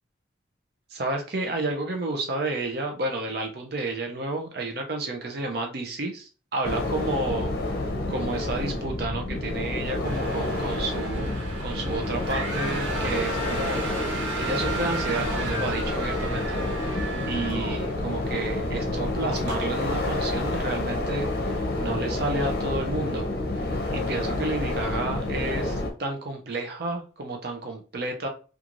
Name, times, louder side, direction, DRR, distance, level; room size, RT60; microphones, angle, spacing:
voice 1, 0.9-7.5 8.1-11.3 11.6-13.9 14.4-16.6 16.8-23.3 23.6-28.3, right 2 dB, 55° right, 3 dB, 0.5 m, -31 dB
sound 1, 6.6-25.9, left 2 dB, 55° left, 0.6 m, -29 dB
sound 2, 10.0-18.3 18.7-18.8 19.3-19.6, right 2 dB, 80° right, 1.2 m, -34 dB
3.0 x 2.3 x 2.5 m, 0.36 s
head